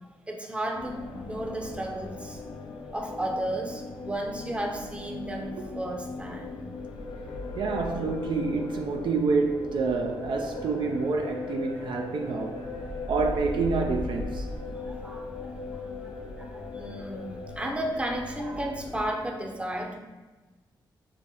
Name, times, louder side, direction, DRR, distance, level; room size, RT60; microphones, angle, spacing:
voice 1, 0.3-2.4 2.9-6.6 14.8-16.1 16.4-20.0, right 1 dB, 15° right, 0.6 m, -34 dB
sound 1, 0.7-19.1, left 3 dB, 75° left, 0.5 m, -38 dB
voice 2, 7.5-12.6 13.1-14.5, right 4 dB, 70° right, 0.4 m, -28 dB
5.7 x 2.0 x 3.6 m
cardioid pair, 70°, 8 cm